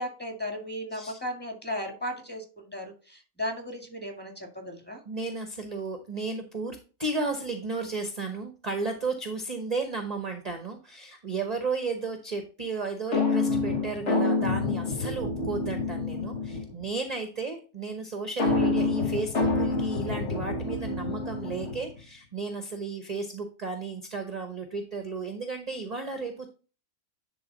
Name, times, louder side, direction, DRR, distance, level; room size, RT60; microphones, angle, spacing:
voice 1, 0.0-5.0, left 1 dB, 5° left, 1 dB, 1.9 m, -36 dB
voice 2, 5.1-26.5, right 4 dB, 35° right, 6 dB, 0.9 m, -34 dB
sound 1, 13.1-16.8 18.4-22.0, left 3 dB, 55° left, 1.6 m, -28 dB
10.5 x 3.6 x 4.0 m, 0.35 s
omnidirectional pair, 1.5 m